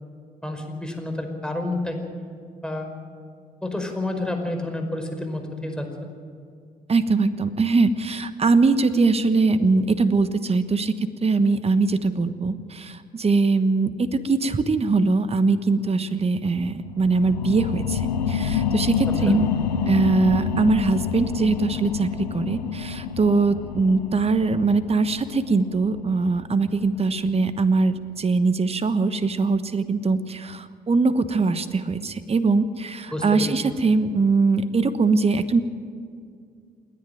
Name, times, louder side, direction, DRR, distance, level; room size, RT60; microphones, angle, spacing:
voice 1, 0.4-2.3 2.6-2.9 3.6-6.1 19.3-19.4 33.1-33.5, left 1 dB, 5° left, 4 dB, 5.2 m, -29 dB
voice 2, 6.9-10.9 11.2-19.5 19.9-35.6, right 3 dB, 30° right, 12 dB, 1.2 m, -22 dB
sound 1, 16.8-28.0 28.4-28.5, left 7 dB, 90° left, 0.8 m, -28 dB
28.5 x 10.5 x 9.2 m, 2.3 s
hypercardioid pair, 45°, 21 cm